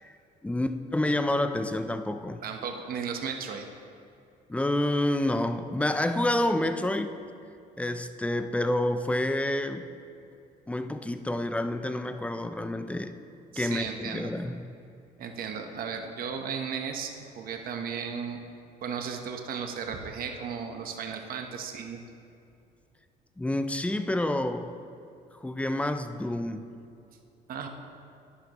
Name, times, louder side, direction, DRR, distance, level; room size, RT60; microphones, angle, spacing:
voice 1, 0.4-2.4 4.5-7.2 7.8-9.9 10.7-13.1 13.6-14.6 23.4-24.7 25.4-26.7, left 1 dB, 10° left, 9 dB, 0.5 m, -28 dB
voice 2, 2.4-3.7 13.5-14.3 15.2-18.4 18.8-22.0 27.5-27.7, right 6 dB, 60° right, 4 dB, 1.0 m, -35 dB
11.0 x 10.5 x 3.0 m, 2.5 s
cardioid pair, 110°, 17 cm